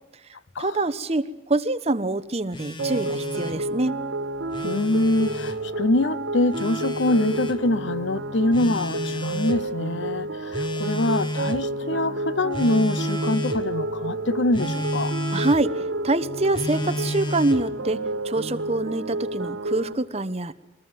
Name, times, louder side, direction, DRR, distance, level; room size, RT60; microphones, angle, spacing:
voice 1, 0.6-3.9 15.3-20.5, right 2 dB, 35° right, 1.0 m, -25 dB
Telephone, 2.5-3.6 4.4-5.6 6.5-7.6 8.5-9.6 10.5-11.7 12.5-13.6 14.5-15.6 16.5-17.7, equal, 25° left, 1.3 m, -31 dB
sound 1, 2.8-19.9, right 2 dB, 80° right, 1.7 m, -30 dB
voice 2, 4.6-15.1, left 2 dB, 75° left, 0.8 m, -24 dB
24.5 x 19.5 x 9.5 m
head